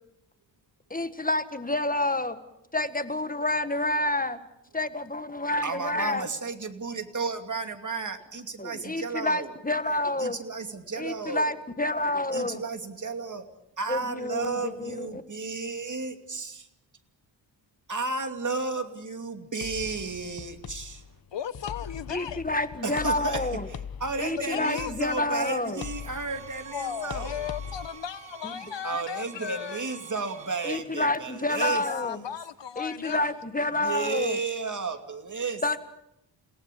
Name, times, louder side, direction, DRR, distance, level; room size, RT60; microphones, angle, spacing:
voice 1, 0.9-2.4 2.7-4.4 4.7-6.2 8.6-10.4 11.0-12.6 13.9-15.2 22.1-23.6 24.2-25.8 28.4-28.5 30.6-32.2 32.8-34.4 35.6-35.8, left 2 dB, 20° left, 1.7 m, -28 dB
voice 2, 5.6-9.5 10.2-11.5 12.3-13.4 13.8-16.7 17.9-21.0 22.8-27.5 28.8-32.3 33.7-35.6, right 4 dB, 40° right, 2.8 m, -33 dB
sound 1, 19.6-27.9, left 7 dB, 55° left, 1.1 m, -41 dB
voice 3, 21.3-22.4 24.5-24.9 26.7-29.9 31.5-33.3, left 9 dB, 75° left, 1.3 m, -36 dB
sound 2, 25.8-30.8, right 7 dB, 70° right, 2.7 m, -47 dB
30.0 x 18.0 x 8.6 m
wide cardioid pair, 100°, 44 cm